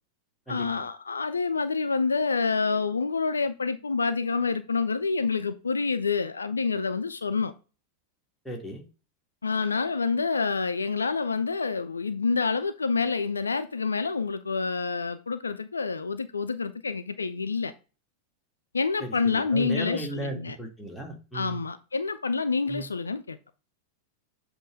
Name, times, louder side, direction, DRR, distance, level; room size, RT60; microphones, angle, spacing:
voice 1, 0.5-7.5 9.4-17.7 18.7-20.6 21.3-23.4, left 4 dB, 75° left, 0.4 m, -27 dB
voice 2, 8.5-8.8 19.0-21.6 22.7-22.8, right 1 dB, ahead, 1.9 m, -36 dB
7.6 x 3.0 x 4.9 m
figure-of-eight pair, 90°, 0 cm